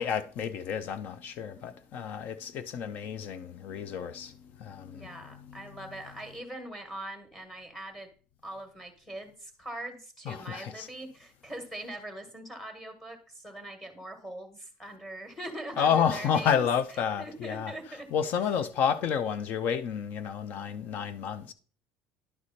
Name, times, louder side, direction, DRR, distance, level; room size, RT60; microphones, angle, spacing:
voice 1, 0.0-4.3 4.6-5.1 5.5-5.6 10.2-10.9 15.7-21.5, left 7 dB, 45° left, 0.6 m, -30 dB
voice 2, 4.9-8.1 8.4-16.6 17.2-18.1, right 1 dB, 10° left, 1.5 m, -42 dB
11.0 x 4.8 x 4.2 m
cardioid pair, 145°, 4 cm